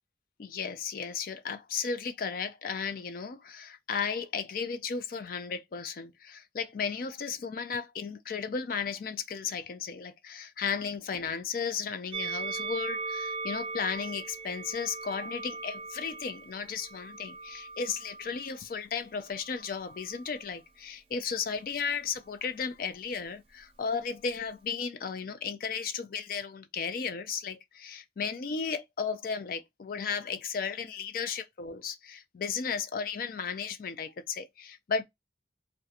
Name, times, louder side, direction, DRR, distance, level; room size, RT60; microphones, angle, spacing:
voice 1, 0.4-35.0, left 6 dB, 50° left, 0.3 m, -35 dB
Musical instrument, 12.1-18.5 19.4-20.4, right 4 dB, 30° right, 0.4 m, -39 dB
2.4 x 2.2 x 2.7 m
head